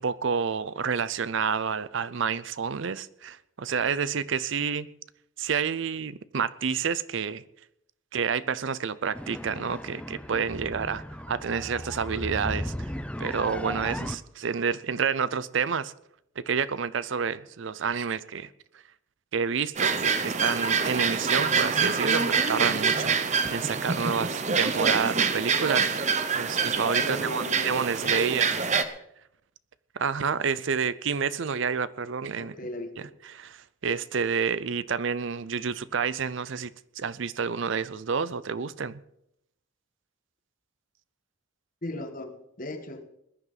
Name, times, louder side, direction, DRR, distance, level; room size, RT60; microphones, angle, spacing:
voice 1, 0.0-4.9 5.4-7.4 8.1-12.7 13.2-15.9 16.4-18.5 19.3-25.9 26.3-28.5 29.9-32.5 33.0-39.0, right 6 dB, 65° right, 0.5 m, -29 dB
sound 1, 9.1-14.1, left 1 dB, 5° left, 0.5 m, -36 dB
sound 2, 19.8-28.8, right 5 dB, 35° right, 0.8 m, -26 dB
voice 2, 27.0-28.7 32.3-33.1 41.8-43.0, left 1 dB, 40° left, 1.5 m, -37 dB
20.0 x 11.0 x 4.0 m
head